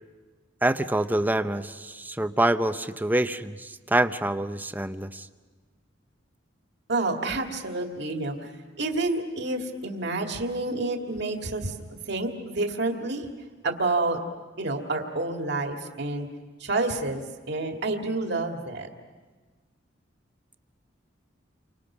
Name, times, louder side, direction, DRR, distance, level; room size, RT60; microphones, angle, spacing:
voice 1, 0.6-5.3, right 1 dB, 10° right, 10 dB, 0.7 m, -26 dB
voice 2, 6.9-8.5 8.8-11.7 12.1-13.3 13.6-14.2 14.6-16.3 16.6-18.9, right 2 dB, 60° right, 3 dB, 2.1 m, -29 dB
30.0 x 25.0 x 6.1 m, 1.4 s
head